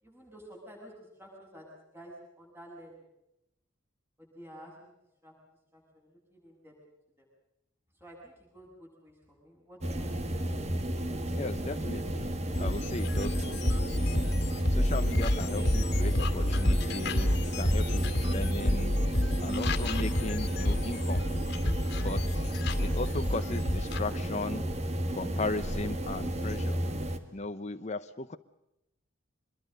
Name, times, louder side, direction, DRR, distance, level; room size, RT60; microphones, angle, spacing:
voice 1, 0.0-3.1 4.2-4.9 5.2-5.3 5.7-6.7 7.2-7.3 7.9-10.1, equal, 10° right, -1 dB, 7.9 m, -51 dB
sound 1, 9.8-27.2, right 1 dB, 35° right, 2.1 m, -32 dB
voice 2, 11.3-12.3 12.6-14.3 14.7-18.9 19.4-21.2 22.0-22.4 22.8-24.7 25.1-26.8 27.3-28.4, left 2 dB, 35° left, 8 dB, 0.9 m, -37 dB
sound 2, 12.5-24.0, left 1 dB, 55° left, 2.2 m, -30 dB
25.5 x 22.0 x 6.6 m, 0.84 s
head